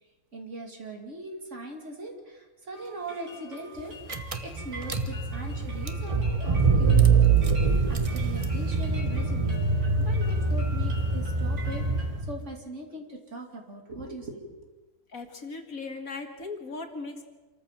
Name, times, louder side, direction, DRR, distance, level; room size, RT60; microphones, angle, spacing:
voice 1, 0.3-7.4 7.9-11.9 12.3-14.6, right 1 dB, 50° right, 2 dB, 2.9 m, -40 dB
sound 1, 2.7-12.2, equal, 65° right, 4.3 m, -46 dB
Car / Engine, 3.8-3.9 4.1-12.5, right 4 dB, 25° right, 1.0 m, -24 dB
voice 2, 15.1-17.2, left 3 dB, 60° left, 5 dB, 2.3 m, -38 dB
27.0 x 14.0 x 7.5 m, 1.2 s
omnidirectional pair, 1.7 m